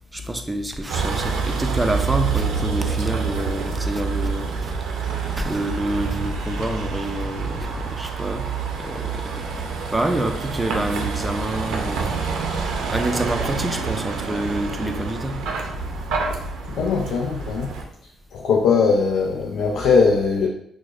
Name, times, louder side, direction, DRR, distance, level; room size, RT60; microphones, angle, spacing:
voice 1, 0.1-4.7 5.4-8.5 8.8-9.5 9.9-12.2 12.9-15.6, right 1 dB, 15° right, 5 dB, 0.4 m, -27 dB
Vehicle, 0.9-17.8, right 5 dB, 85° right, 0.5 m, -27 dB
voice 2, 16.7-17.8 18.3-20.5, left 5 dB, 80° left, 0 dB, 0.3 m, -20 dB
4.6 x 2.0 x 2.4 m, 0.73 s
cardioid pair, 90°, 0 cm